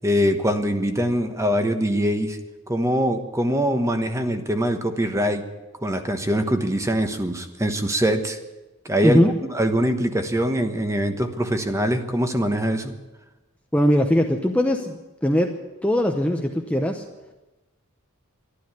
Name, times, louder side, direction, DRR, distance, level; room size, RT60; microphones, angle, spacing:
voice 1, 0.0-2.4 2.7-5.4 5.8-8.4 8.8-9.2 9.5-12.9, equal, 15° right, 7 dB, 1.1 m, -23 dB
voice 2, 9.0-9.3 13.7-15.5 15.8-17.0, equal, 5° left, 3 dB, 0.8 m, -20 dB
12.5 x 12.0 x 9.5 m, 1.1 s
head